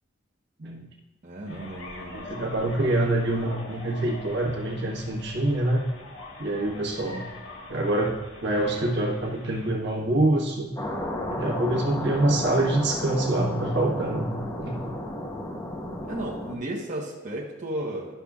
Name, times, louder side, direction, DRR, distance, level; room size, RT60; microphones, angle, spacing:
voice 1, 1.2-2.3 16.1-18.2, right 1 dB, 40° right, -4 dB, 1.1 m, -34 dB
sound 1, 1.5-9.7, left 2 dB, 80° left, 1.4 m, -43 dB
voice 2, 2.1-5.8 6.4-7.2 7.7-10.7 11.3-14.8, right 1 dB, 60° right, 0 dB, 1.3 m, -26 dB
sound 2, 10.8-16.6, left 1 dB, 20° left, 0.8 m, -33 dB
11.5 x 6.8 x 2.4 m, 1.1 s
head